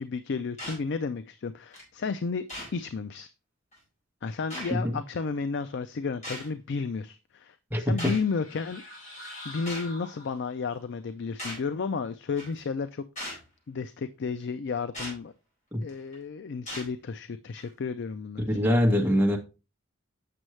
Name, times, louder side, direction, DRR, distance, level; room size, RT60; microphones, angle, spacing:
voice 1, 0.0-2.4 2.7-3.3 4.2-8.8 9.5-15.3 15.8-18.8, left 5 dB, 55° left, 0.4 m, -33 dB
sound 1, 0.6-0.8 1.7-1.8 2.5-2.7 3.7-3.8 4.5-4.7 6.2-6.5 8.0-8.2 9.7-9.9 11.4-11.7 12.4-12.6 13.2-13.4 14.9-15.2 15.9-16.1 16.7-16.9 17.6-17.7, equal, 35° left, 4.2 m, -38 dB
voice 2, 7.7-8.1 15.7-15.8 18.5-19.4, equal, 10° right, 1.3 m, -24 dB
sound 2, 8.1-10.7, left 1 dB, 75° left, 3.5 m, -46 dB
7.7 x 6.3 x 3.2 m
head